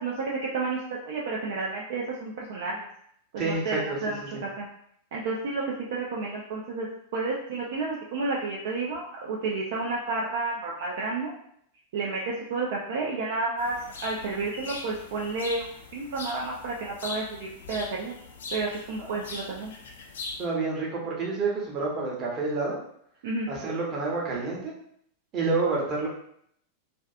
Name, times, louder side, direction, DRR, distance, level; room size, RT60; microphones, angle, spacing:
voice 1, 0.0-2.9 3.3-4.7 5.1-5.6 5.9-6.9 7.1-11.3 11.9-13.8 14.0-15.7 15.9-18.2 18.5-19.7 23.2-23.5, right 3 dB, 55° right, -3 dB, 0.4 m, -31 dB
voice 2, 3.4-4.0 19.0-19.1 20.4-22.8 23.5-24.7 25.3-26.1, right 3 dB, 30° right, -3 dB, 0.8 m, -28 dB
sound 1, 13.6-20.4, left 3 dB, 60° left, 0.4 m, -41 dB
2.5 x 2.3 x 2.4 m, 0.69 s
figure-of-eight pair, 90°, 0 cm